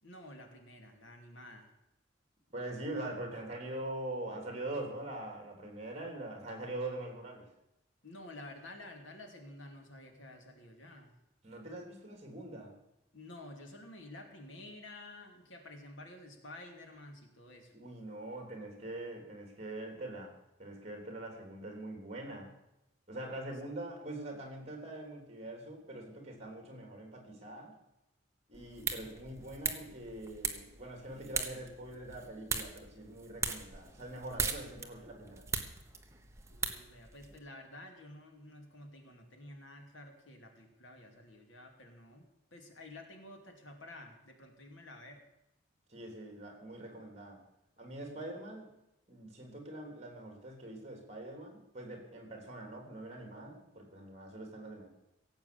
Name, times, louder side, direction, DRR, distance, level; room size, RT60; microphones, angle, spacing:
voice 1, 0.0-1.7 8.0-11.1 13.1-17.7 36.5-45.3, left 1 dB, 80° left, 3 dB, 2.7 m, -51 dB
voice 2, 2.5-7.5 11.4-12.7 17.7-20.3 20.6-22.5 23.1-27.7 28.5-35.4 45.9-47.4 47.8-48.7 49.1-54.9, right 1 dB, 35° right, 3 dB, 3.5 m, -43 dB
sound 1, 28.5-37.4, right 5 dB, 15° right, 1.1 m, -40 dB
17.0 x 8.2 x 7.1 m, 0.88 s
head